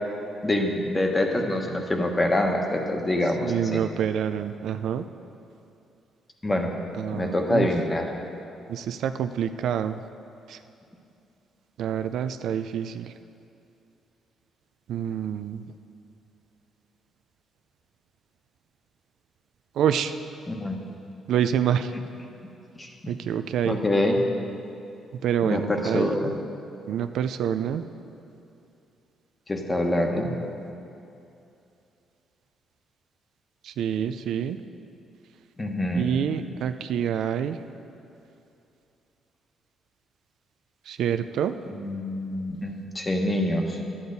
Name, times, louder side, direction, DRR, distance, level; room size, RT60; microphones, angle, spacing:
voice 1, 0.4-3.8 6.4-6.7 7.1-8.1 20.5-20.8 22.8-22.9 23.6-24.2 25.4-26.3 29.5-30.3 35.6-36.2 41.7-43.8, left 1 dB, 20° left, 2 dB, 1.2 m, -25 dB
voice 2, 3.4-5.1 7.0-7.7 8.7-10.0 10.5-10.6 11.8-13.1 14.9-15.6 19.8-20.1 21.3-21.9 23.1-23.8 25.2-26.1 26.9-27.8 33.6-34.6 35.9-37.6 40.9-41.5, right 9 dB, 75° right, 9 dB, 0.4 m, -27 dB
11.0 x 8.6 x 4.0 m, 2.7 s
cardioid pair, 90°, 0 cm